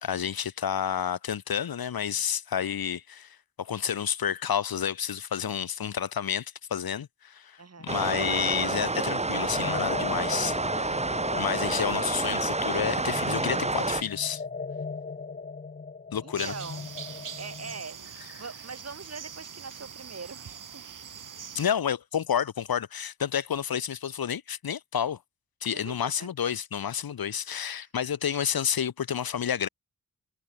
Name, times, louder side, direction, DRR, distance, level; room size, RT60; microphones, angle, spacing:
voice 1, 0.0-11.0 11.4-14.4 16.1-16.5 21.5-25.2 25.6-29.7, left 8 dB, 85° left, 0.8 m, -30 dB
voice 2, 7.6-7.9 16.2-16.9 17.4-20.8 21.5-21.7 25.7-26.3 28.3-28.4, right 4 dB, 45° right, 1.6 m, -42 dB
sound 1, 7.9-14.0, right 2 dB, 20° right, 0.8 m, -29 dB
sound 2, 9.5-17.8, left 4 dB, 25° left, 0.6 m, -38 dB
sound 3, 16.4-21.7, right 7 dB, 60° right, 0.8 m, -43 dB
wide cardioid pair, 65°, 35 cm